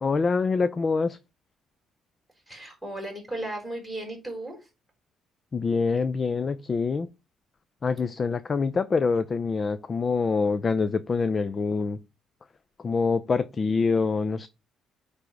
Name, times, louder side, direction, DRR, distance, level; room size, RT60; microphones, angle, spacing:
voice 1, 0.0-1.2 5.5-7.1 7.8-12.0 12.8-14.5, left 4 dB, 30° left, 0.4 m, -25 dB
voice 2, 2.5-4.7 8.0-8.1, right 1 dB, ahead, 4.0 m, -36 dB
9.3 x 3.5 x 5.2 m
cardioid pair, 120°, 0 cm